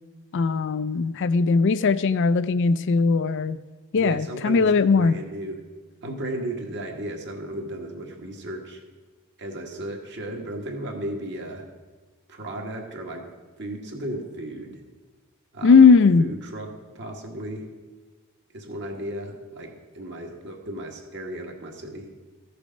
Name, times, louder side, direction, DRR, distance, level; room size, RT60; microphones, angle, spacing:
voice 1, 0.3-3.6 3.9-5.1 15.6-16.3, left 4 dB, 55° left, 14 dB, 0.4 m, -18 dB
voice 2, 4.0-5.6 6.0-8.8 9.4-11.7 12.3-13.3 13.6-14.8 15.5-16.7 16.9-17.7 18.5-22.1, right 1 dB, 55° right, 1 dB, 1.7 m, -35 dB
14.5 x 6.7 x 5.3 m, 1.3 s
head